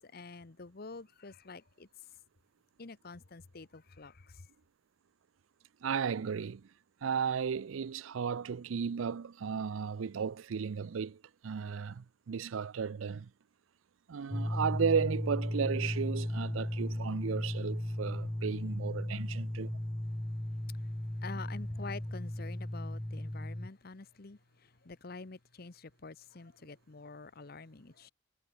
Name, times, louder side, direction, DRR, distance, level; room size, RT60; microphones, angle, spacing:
voice 1, 0.0-1.9 2.8-4.5 19.3-19.4 20.8-28.1, left 3 dB, 50° left, 0.9 m, -47 dB
voice 2, 5.8-6.7 7.0-13.3 14.1-19.8, right 6 dB, 85° right, 0.4 m, -34 dB
sound 1, 14.3-23.7, left 1 dB, 5° left, 0.3 m, -36 dB
head